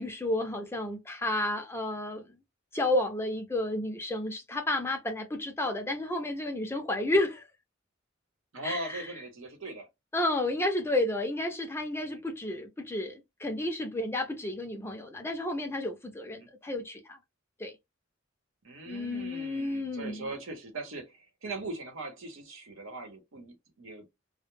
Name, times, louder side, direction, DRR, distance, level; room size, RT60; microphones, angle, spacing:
voice 1, 0.0-2.3 2.7-7.5 8.6-9.1 10.1-17.2 17.6-17.7 18.9-20.3, left 1 dB, 10° left, 0.4 m, -31 dB
voice 2, 8.5-9.9 16.4-16.5 18.6-24.0, right 2 dB, 75° right, 0.9 m, -40 dB
2.2 x 2.0 x 3.1 m
head